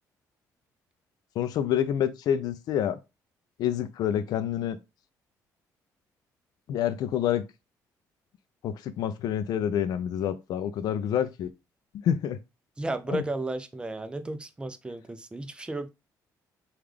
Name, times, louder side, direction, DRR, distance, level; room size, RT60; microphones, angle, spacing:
voice 1, 1.4-3.0 3.6-4.8 6.7-7.4 8.6-11.5 12.0-12.4 13.1-13.2, left 10 dB, 70° left, 0.3 m, -27 dB
voice 2, 12.8-15.9, right 2 dB, 15° right, 0.4 m, -33 dB
3.5 x 2.3 x 3.2 m
cardioid pair, 90°, 7 cm